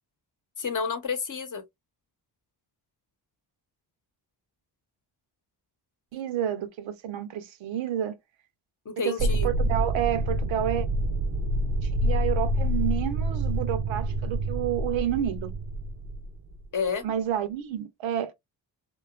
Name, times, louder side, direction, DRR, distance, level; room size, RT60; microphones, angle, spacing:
voice 1, 0.6-1.6 8.8-9.5 16.7-17.0, left 5 dB, 40° left, 0.8 m, -30 dB
voice 2, 6.1-8.1 9.0-10.9 11.8-15.5 17.0-18.3, right 10 dB, 75° right, 0.7 m, -30 dB
sound 1, 9.2-16.6, right 1 dB, 40° right, 0.5 m, -27 dB
2.8 x 2.3 x 2.3 m
cardioid pair, 65°, 46 cm